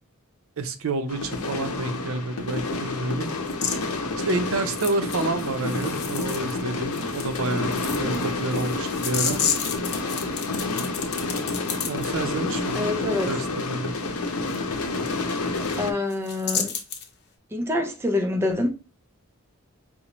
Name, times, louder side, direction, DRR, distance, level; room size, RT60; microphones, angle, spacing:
voice 1, 0.6-3.3 3.7-3.8 4.3-9.4 11.9-12.9 13.3-13.9, right 2 dB, 65° right, 0.5 m, -29 dB
sound 1, 1.1-15.9, left 3 dB, 90° left, 0.7 m, -29 dB
sound 2, 3.5-3.8 4.7-6.6 6.9-12.1 14.5-14.6 15.1-15.2 15.4-15.8 16.1-17.1, left 7 dB, 50° left, 0.7 m, -31 dB
voice 2, 12.7-13.3 15.8-16.7 17.5-18.7, left 2 dB, 10° right, 0.4 m, -26 dB
5.3 x 2.1 x 2.9 m
head